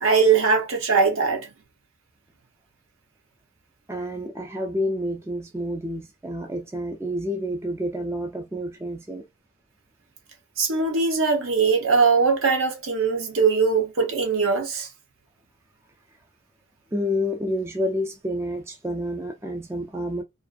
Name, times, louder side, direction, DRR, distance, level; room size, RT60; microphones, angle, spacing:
voice 1, 0.0-1.5 10.6-14.9, right 5 dB, 65° right, 0.7 m, -21 dB
voice 2, 3.9-9.2 16.9-20.2, equal, 10° right, 0.3 m, -29 dB
2.5 x 2.4 x 2.3 m
head